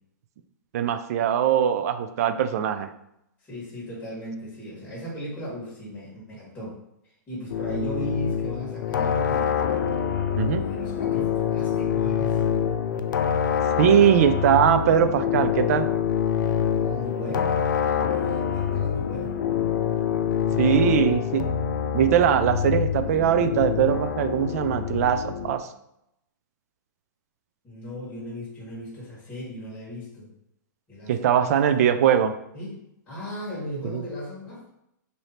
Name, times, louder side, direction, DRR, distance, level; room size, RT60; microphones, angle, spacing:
voice 1, 0.7-2.9 10.4-10.6 13.8-15.9 20.6-21.5 21.9-25.7 31.1-32.3 33.9-34.0, right 9 dB, 50° right, 10 dB, 0.4 m, -21 dB
voice 2, 3.5-6.8 7.3-9.6 10.4-12.6 16.7-19.4 20.4-21.0 27.6-30.3 30.9-31.5 32.5-34.6, equal, 15° left, -7 dB, 1.5 m, -37 dB
sound 1, 7.5-25.6, left 8 dB, 80° left, 0.4 m, -26 dB
3.2 x 2.7 x 4.2 m, 0.81 s
hypercardioid pair, 150°, 10 cm